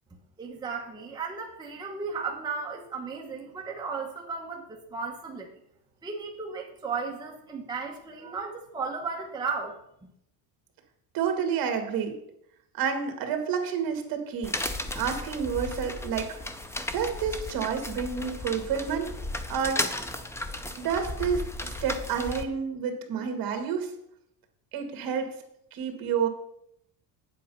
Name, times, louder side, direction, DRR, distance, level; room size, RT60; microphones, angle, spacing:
voice 1, 0.4-5.5 6.0-9.8, right 4 dB, 10° right, -1 dB, 1.1 m, -35 dB
voice 2, 11.1-12.2 12.8-14.6 14.9-16.3 16.9-19.1 19.5-19.9 20.8-23.9 24.7-25.4 25.7-26.3, right 7 dB, 50° right, 6 dB, 2.0 m, -29 dB
sound 1, 14.4-22.4, left 2 dB, 5° left, 0.4 m, -35 dB
9.2 x 7.7 x 5.4 m, 0.75 s
cardioid pair, 150°, 44 cm